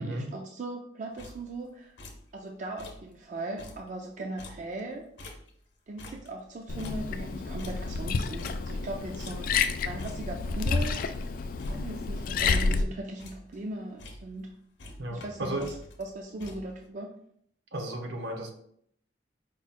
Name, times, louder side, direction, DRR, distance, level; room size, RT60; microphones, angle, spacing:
voice 1, 0.0-1.9 2.3-5.0 5.9-11.0 11.7-14.5 15.1-17.1, right 2 dB, 45° right, 2 dB, 0.4 m, -38 dB
sound 1, 1.2-1.7 2.0-2.3 2.7-3.1 3.4-5.7 6.0-8.9 9.2-9.7 10.0-10.4 10.8-12.1 12.4-12.8 13.0-13.7 14.0-14.5 14.8-16.9, left 1 dB, 75° left, 0.7 m, -48 dB
Liquid, 6.7-12.8, left 4 dB, 50° left, 0.3 m, -30 dB
voice 2, 15.0-15.7 17.7-18.5, right 1 dB, 70° right, 3 dB, 0.8 m, -34 dB
4.9 x 2.1 x 4.1 m, 0.67 s
head